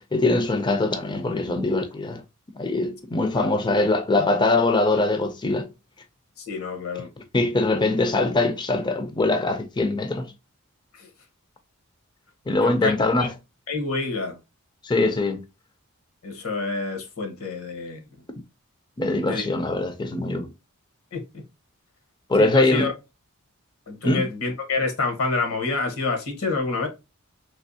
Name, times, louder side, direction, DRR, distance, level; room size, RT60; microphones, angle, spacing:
voice 1, 0.1-2.2 2.6-5.7 7.2-10.3 12.5-13.3 14.8-15.4 19.0-20.5 22.3-22.9 24.0-24.3, left 2 dB, 20° left, 0.5 m, -22 dB
voice 2, 6.4-7.1 11.0-11.1 12.6-13.3 13.7-14.4 16.2-18.0 19.2-19.5 21.1-21.4 22.4-22.9 23.9-26.9, left 3 dB, 70° left, 1.1 m, -27 dB
3.4 x 2.9 x 2.7 m
head